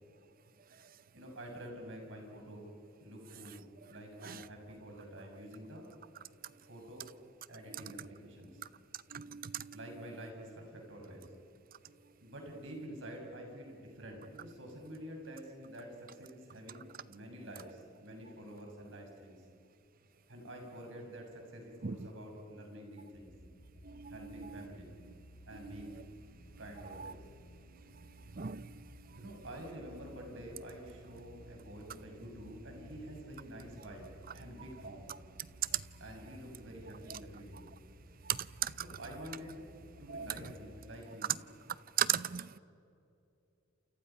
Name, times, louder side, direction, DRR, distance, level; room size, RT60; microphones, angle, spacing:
voice 1, 1.1-2.7 3.0-5.9 6.6-7.1 7.5-8.6 9.7-11.3 12.2-19.4 20.3-23.3 24.1-25.0 25.5-26.0 26.6-27.2 29.2-34.1 34.3-35.2 36.0-37.6 38.7-39.6 40.0-41.4, equal, 65° right, 6.4 m, -48 dB
voice 2, 9.1-9.7 21.8-21.9 23.9-24.1 28.4-28.6 38.6-38.7 40.1-40.3 42.0-42.6, right 9 dB, 45° right, 0.7 m, -34 dB
sound 1, 23.1-40.5, equal, 40° left, 5.9 m, -56 dB
30.0 x 28.5 x 5.7 m
head